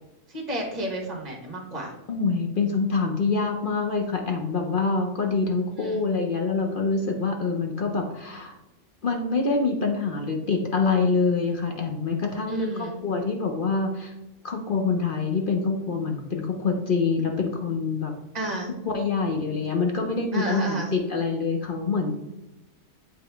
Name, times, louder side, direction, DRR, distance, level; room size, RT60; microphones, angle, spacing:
voice 1, 0.3-1.9 5.8-6.1 12.5-13.0 18.3-18.7 20.3-20.9, right 1 dB, 30° right, 0 dB, 1.4 m, -31 dB
voice 2, 2.1-8.6 9.0-14.1 14.4-18.1 18.8-22.1, left 4 dB, 50° left, 3 dB, 0.7 m, -25 dB
8.9 x 3.7 x 3.5 m, 0.98 s
omnidirectional pair, 1.4 m